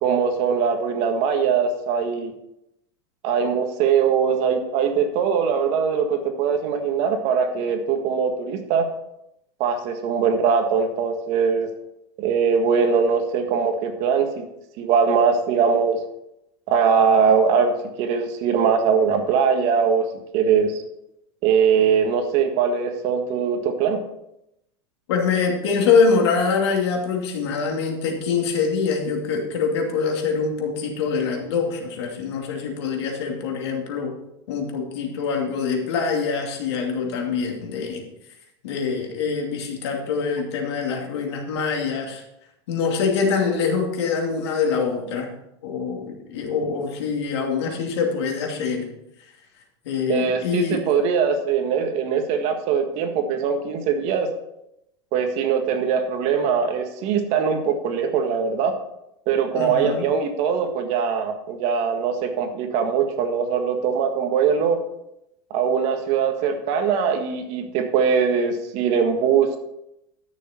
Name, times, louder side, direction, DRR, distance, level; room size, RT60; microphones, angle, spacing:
voice 1, 0.0-2.3 3.2-8.9 9.6-11.7 12.2-14.4 14.8-16.0 16.7-20.0 20.3-20.8 21.4-24.0 50.1-54.3 55.1-58.7 59.3-64.8 65.5-69.6, right 6 dB, 50° right, 6 dB, 1.7 m, -21 dB
voice 2, 25.1-34.1 34.5-38.0 38.6-42.2 42.7-45.3 45.6-48.9 49.8-50.8 59.5-60.0, left 5 dB, 85° left, 1 dB, 2.6 m, -24 dB
13.0 x 6.6 x 4.4 m, 0.82 s
supercardioid pair, 140°, 14 cm